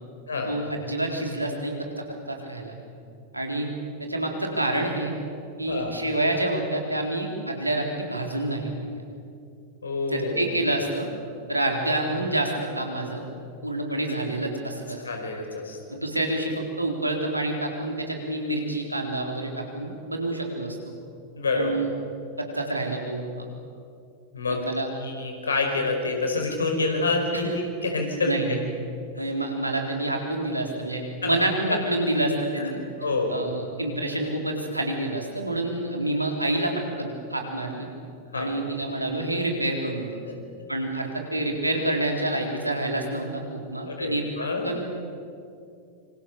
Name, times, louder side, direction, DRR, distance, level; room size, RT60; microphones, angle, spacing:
voice 1, 0.5-1.9 2.3-2.8 3.3-3.7 4.0-5.1 5.6-8.9 10.1-11.1 11.5-13.2 13.6-15.0 15.9-20.8 21.5-21.9 22.4-23.5 24.5-24.9 27.3-27.5 28.3-28.6 29.2-32.8 33.3-37.9 38.3-40.2 40.7-44.2 44.6-44.9, right 1 dB, 85° right, 2 dB, 4.0 m, -28 dB
voice 2, 9.8-10.6 15.0-16.0 21.4-21.9 24.3-24.7 25.0-28.3 29.2-29.3 31.2-31.4 31.7-31.8 32.6-32.7 33.0-33.4 38.3-38.5 43.8-44.6, left 3 dB, 75° left, 3 dB, 5.2 m, -27 dB
27.0 x 26.5 x 6.8 m, 2.5 s
figure-of-eight pair, 90°, 0 cm